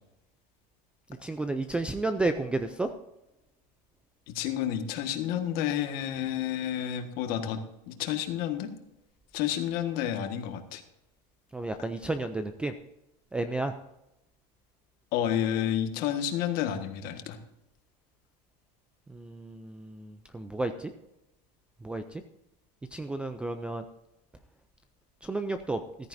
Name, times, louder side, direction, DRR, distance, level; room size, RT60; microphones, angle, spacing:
voice 1, 1.2-2.9 11.5-12.7 13.3-13.7 19.1-20.9 21.8-22.0 22.9-23.8 25.2-25.8, right 2 dB, 5° right, 8 dB, 0.3 m, -31 dB
voice 2, 4.3-7.6 7.9-8.7 9.3-10.8 15.1-17.4, left 10 dB, 45° left, 7 dB, 1.6 m, -30 dB
14.5 x 14.0 x 2.6 m, 0.89 s
cardioid pair, 170°, 21 cm